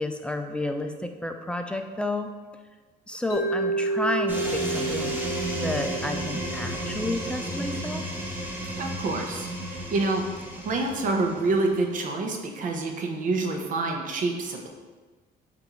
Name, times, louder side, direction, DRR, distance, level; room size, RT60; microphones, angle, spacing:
voice 1, 0.0-2.3 3.1-5.2 5.6-8.0, left 1 dB, 5° left, 5 dB, 0.3 m, -31 dB
Mallet percussion, 3.3-7.4, right 2 dB, 75° left, 0.7 m, -30 dB
sound 1, 4.3-11.8, right 1 dB, 10° right, 0.9 m, -33 dB
voice 2, 8.8-10.3 10.6-14.7, right 3 dB, 50° right, 3 dB, 0.7 m, -27 dB
6.4 x 2.6 x 3.0 m, 1.3 s
cardioid pair, 110°, 17 cm